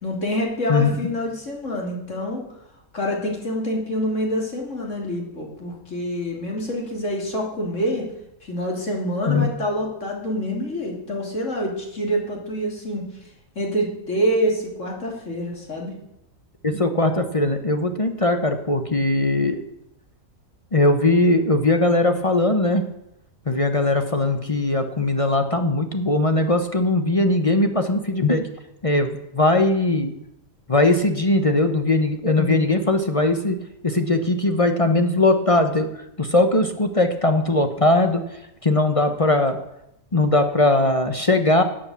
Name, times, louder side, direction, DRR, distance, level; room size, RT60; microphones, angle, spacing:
voice 1, 0.0-2.4 2.9-8.1 8.4-13.0 13.6-15.9, equal, 60° left, 0 dB, 3.5 m, -26 dB
voice 2, 16.6-19.6 20.7-22.8 23.5-28.4 28.8-30.1 30.7-33.6 33.8-35.9 36.2-38.2 38.6-39.6 40.1-41.6, left 2 dB, 25° left, 7 dB, 1.0 m, -20 dB
11.5 x 8.3 x 8.5 m, 0.81 s
omnidirectional pair, 1.5 m